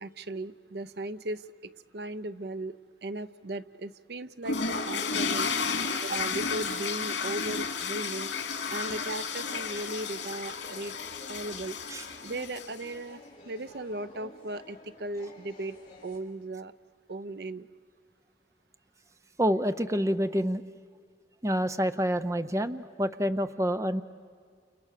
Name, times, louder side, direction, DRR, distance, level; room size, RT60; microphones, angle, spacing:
voice 1, 0.0-5.5 6.0-8.3 8.7-10.9 11.3-11.8 12.2-16.7 17.1-17.7, right 2 dB, 65° right, 14 dB, 0.7 m, -37 dB
sound 1, 4.4-12.9, left 5 dB, 85° left, 2.8 m, -32 dB
sound 2, 8.2-16.2, left 2 dB, 30° left, 5.1 m, -51 dB
voice 2, 19.4-20.6 21.4-24.0, equal, 15° right, 10 dB, 0.7 m, -27 dB
29.5 x 29.0 x 6.7 m, 2.1 s
head